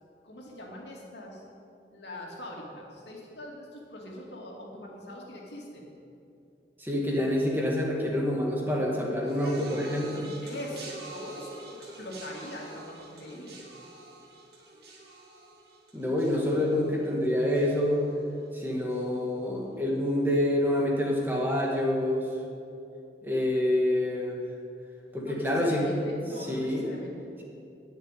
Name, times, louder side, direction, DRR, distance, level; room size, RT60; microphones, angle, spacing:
voice 1, 0.2-1.4 1.9-5.9 10.4-13.7 25.2-27.4, left 1 dB, 75° left, -2 dB, 2.4 m, -42 dB
voice 2, 6.8-10.3 15.9-18.0 18.5-22.3 23.2-24.4 25.1-25.8 26.5-26.9, left 1 dB, 10° right, -2 dB, 1.7 m, -27 dB
sound 1, 9.2-18.6 18.9-19.4 20.3-20.4, right 2 dB, 60° right, 1.9 m, -47 dB
10.5 x 6.8 x 9.2 m, 2.7 s
head